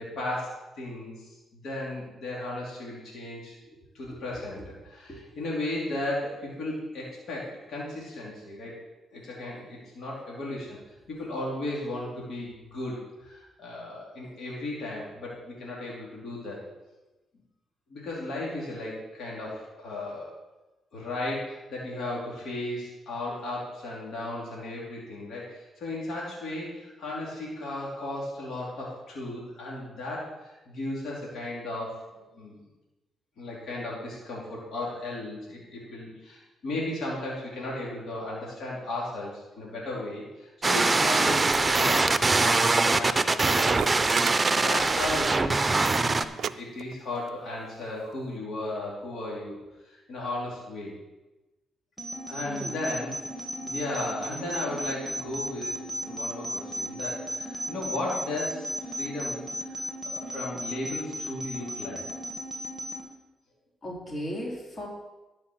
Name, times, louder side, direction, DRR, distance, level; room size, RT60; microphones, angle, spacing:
voice 1, 0.0-3.6 3.9-8.7 9.1-10.8 11.1-16.6 17.9-20.3 20.9-32.0 32.4-32.6 33.4-45.6 45.9-49.6 49.8-51.0 52.3-55.8 56.0-59.4 59.6-62.0, left 1 dB, 70° left, -5 dB, 3.3 m, -35 dB
voice 2, 4.1-4.7 5.1-5.3 32.2-32.4 52.5-52.8 63.8-64.9, equal, 45° left, -2 dB, 3.4 m, -38 dB
sound 1, 40.6-46.2, right 3 dB, 25° right, 0.6 m, -23 dB
sound 2, 43.6-45.5 45.8-46.1 46.4-46.5 46.8-47.3 48.1-48.2, right 8 dB, 65° right, 0.3 m, -34 dB
sound 3, 52.0-63.0, equal, 5° left, 2.9 m, -36 dB
12.0 x 5.7 x 6.4 m, 1.1 s
supercardioid pair, 70°, 0 cm